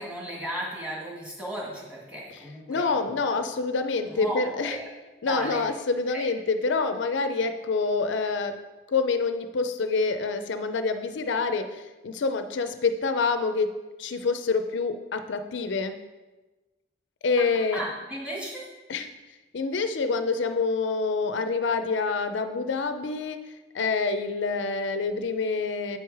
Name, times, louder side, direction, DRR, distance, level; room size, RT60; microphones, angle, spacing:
voice 1, 0.0-3.2 4.1-4.9 5.3-5.6 6.1-6.2 17.4-17.5 17.7-18.6, right 1 dB, 5° right, -4 dB, 1.8 m, -35 dB
voice 2, 2.7-4.8 5.2-8.6 8.9-13.7 14.0-15.9 17.2-17.8 18.9-19.1 19.5-23.4 23.7-26.0, left 4 dB, 70° left, 9 dB, 0.5 m, -27 dB
8.4 x 4.7 x 4.7 m, 1.2 s
head